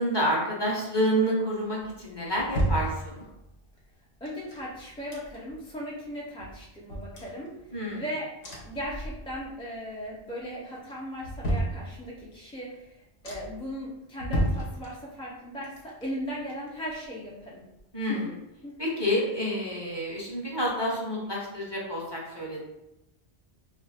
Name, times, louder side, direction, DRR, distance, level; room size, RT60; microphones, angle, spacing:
voice 1, 0.0-3.2 7.7-8.0 17.9-18.3 18.8-22.6, equal, 25° left, -4 dB, 0.8 m, -28 dB
sound 1, 1.8-3.5 4.3-5.7 6.0-6.1 6.4-8.0 8.4-9.6 9.9-10.4 10.9-12.3 12.8-12.9 13.2-13.7 14.1-15.3 15.6-17.5 17.8-17.9, right 1 dB, 75° left, 1.1 m, -33 dB
voice 2, 4.2-7.5 7.9-8.3 8.6-13.0 13.2-17.6 18.1-18.2 18.6-19.3, equal, 10° left, -6 dB, 0.4 m, -37 dB
2.5 x 2.4 x 4.1 m, 0.89 s
omnidirectional pair, 1.1 m